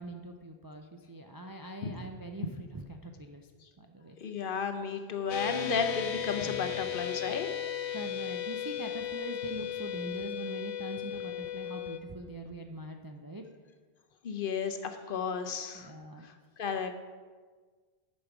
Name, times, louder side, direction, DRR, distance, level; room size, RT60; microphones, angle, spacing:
voice 1, 0.0-3.5 3.8-4.2 7.9-13.4 15.7-16.3, right 2 dB, 35° right, 3 dB, 0.3 m, -42 dB
voice 2, 4.2-7.5 14.2-15.9 16.2-16.3 16.6-17.0, left 6 dB, 60° left, 7 dB, 0.9 m, -33 dB
sound 1, 5.3-12.0, left 10 dB, 90° left, 1.0 m, -36 dB
10.0 x 5.3 x 5.9 m, 1.5 s
omnidirectional pair, 1.1 m